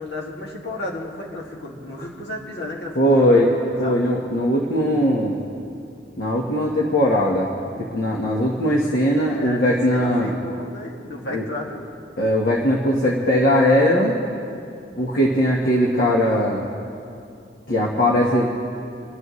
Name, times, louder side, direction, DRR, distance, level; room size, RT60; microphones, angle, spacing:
voice 1, 0.0-3.3 3.8-4.0 9.3-11.9, left 2 dB, 70° left, -3 dB, 2.2 m, -33 dB
voice 2, 3.0-3.5 3.8-5.3 6.2-7.5 7.8-10.3 11.3-11.4 12.2-14.2 15.0-16.6 17.7-18.5, equal, 55° left, -3 dB, 1.3 m, -19 dB
30.0 x 11.0 x 3.2 m, 2.5 s
head